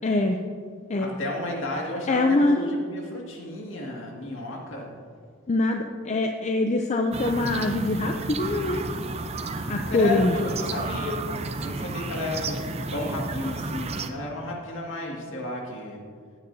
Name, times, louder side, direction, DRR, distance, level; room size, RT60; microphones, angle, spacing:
voice 1, 0.0-0.4 0.9-1.2 2.1-2.6 5.5-8.8 9.7-10.5, left 2 dB, 30° left, 4 dB, 0.4 m, -24 dB
voice 2, 1.0-4.9 9.9-11.2 11.6-12.6 12.9-16.0, left 1 dB, 60° left, -1 dB, 2.0 m, -33 dB
sound 1, 7.1-14.1, right 3 dB, 30° right, 0.5 m, -32 dB
15.5 x 9.5 x 2.7 m, 2.1 s
head